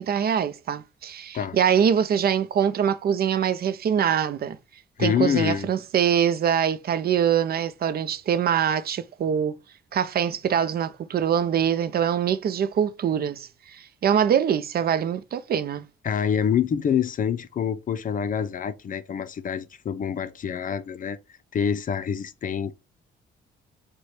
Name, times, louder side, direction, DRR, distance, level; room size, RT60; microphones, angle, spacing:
voice 1, 0.0-4.6 5.0-9.6 9.9-15.8, right 8 dB, 50° right, 0.5 m, -24 dB
voice 2, 5.0-5.7 16.0-21.2 21.5-22.7, left 7 dB, 45° left, 0.5 m, -26 dB
4.8 x 2.2 x 4.2 m
cardioid pair, 90°, 20 cm